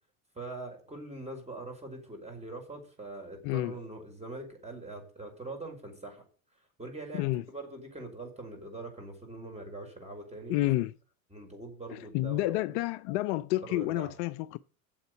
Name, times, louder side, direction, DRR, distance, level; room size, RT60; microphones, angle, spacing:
voice 1, 0.3-6.3 6.8-10.7 11.3-12.8 13.6-14.2, right 2 dB, 15° right, 5.3 m, -43 dB
voice 2, 10.5-10.9 11.9-14.6, left 17 dB, 50° left, 0.5 m, -30 dB
7.9 x 7.8 x 8.2 m
hypercardioid pair, 75°, 45 cm